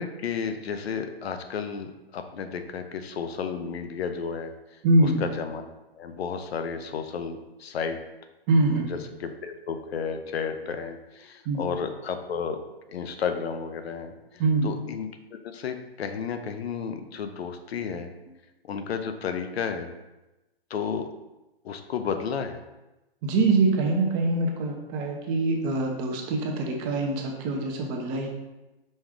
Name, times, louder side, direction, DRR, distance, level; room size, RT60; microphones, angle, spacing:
voice 1, 0.0-5.6 5.9-8.0 8.8-12.6 12.9-18.1 18.6-19.9 20.7-21.1 21.6-22.6, left 6 dB, 75° left, 7 dB, 0.6 m, -32 dB
voice 2, 4.8-5.2 8.5-8.9 11.5-11.6 14.4-14.7 23.2-28.3, right 2 dB, 30° right, 2 dB, 0.6 m, -24 dB
5.2 x 2.3 x 3.5 m, 1.0 s
hypercardioid pair, 125°, 31 cm